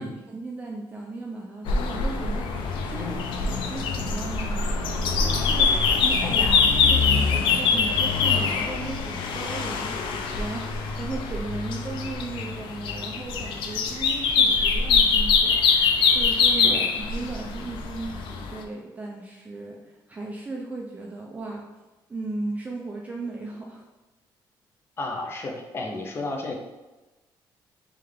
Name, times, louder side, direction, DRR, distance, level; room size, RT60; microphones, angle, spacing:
voice 1, 0.0-21.6 22.1-23.8, right 2 dB, 20° right, -2 dB, 0.5 m, -36 dB
sound 1, 1.7-18.6, left 5 dB, 80° left, 0.5 m, -23 dB
voice 2, 6.2-6.7 16.6-16.9 25.0-26.5, left 2 dB, 30° left, 1 dB, 0.6 m, -33 dB
3.4 x 3.3 x 3.6 m, 1.1 s
cardioid pair, 150°, 8 cm